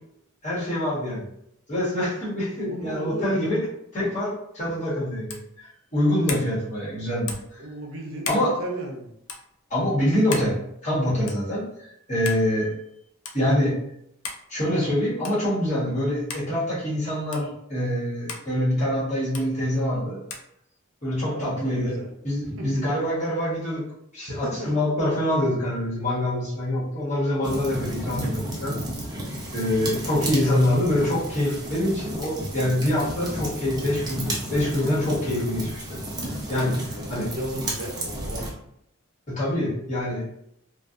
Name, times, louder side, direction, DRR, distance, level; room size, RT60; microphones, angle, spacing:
voice 1, 0.4-1.3 1.7-3.7 3.9-5.4 5.9-7.3 8.3-8.6 9.7-10.6 10.8-11.6 12.1-12.7 13.3-13.8 14.5-20.2 21.0-22.0 22.2-23.8 24.1-28.8 29.5-36.0 36.2-37.3 39.3-40.2, left 1 dB, 35° left, -8 dB, 1.1 m, -25 dB
voice 2, 2.6-3.4 7.6-9.1 21.3-22.1 22.4-22.9 24.3-24.7 29.4-29.9 36.9-38.5, right 1 dB, 70° right, 0 dB, 0.6 m, -35 dB
sound 1, 5.3-5.5 6.3-6.5 7.3-7.5 8.2-8.5 9.2-9.4 10.3-10.5 11.3-11.5 12.2-12.4 13.2-13.4 14.2-14.4 15.2-15.4 16.3-16.5 17.3-17.5 18.3-18.5 19.3-19.5 20.3-20.5, left 4 dB, 85° left, 0.4 m, -34 dB
sound 2, 27.4-38.5, right 1 dB, 20° right, 0.6 m, -33 dB
2.6 x 2.3 x 2.4 m, 0.75 s
head